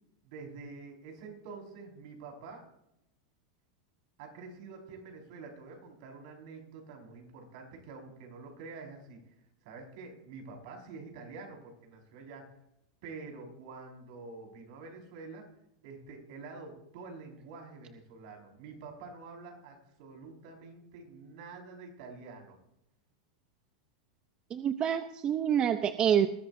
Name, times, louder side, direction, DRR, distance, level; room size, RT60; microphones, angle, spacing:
voice 1, 0.2-2.6 4.2-9.2 9.6-12.5 13.0-15.5 15.8-22.6, right 4 dB, 60° right, 2 dB, 5.3 m, -47 dB
voice 2, 24.5-26.3, right 9 dB, 30° right, 10 dB, 0.7 m, -27 dB
20.5 x 13.0 x 2.7 m, 0.81 s
supercardioid pair, 130°, 3 cm